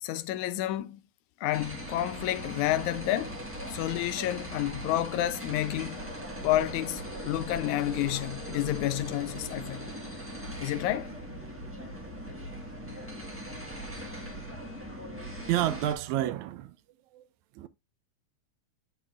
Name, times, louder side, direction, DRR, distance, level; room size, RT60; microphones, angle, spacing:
voice 1, 0.0-1.0 1.4-3.4 3.7-6.0 6.4-9.9 10.6-11.1, left 14 dB, 85° left, 2.0 m, -30 dB
sound 1, 1.5-15.9, equal, 15° right, 0.5 m, -40 dB
voice 2, 15.5-16.8 17.1-17.3 17.6-17.7, right 13 dB, 80° right, 2.0 m, -29 dB
8.0 x 6.7 x 2.4 m
omnidirectional pair, 3.3 m